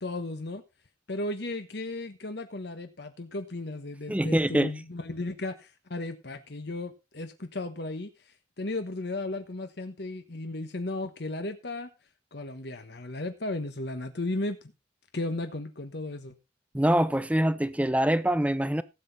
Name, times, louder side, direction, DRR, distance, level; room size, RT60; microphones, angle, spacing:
voice 1, 0.0-0.6 1.1-11.9 12.3-14.6 15.1-16.4, left 2 dB, 60° left, 1.2 m, -35 dB
voice 2, 4.1-4.7 16.7-18.8, right 1 dB, 5° right, 0.6 m, -24 dB
16.5 x 8.0 x 4.0 m
head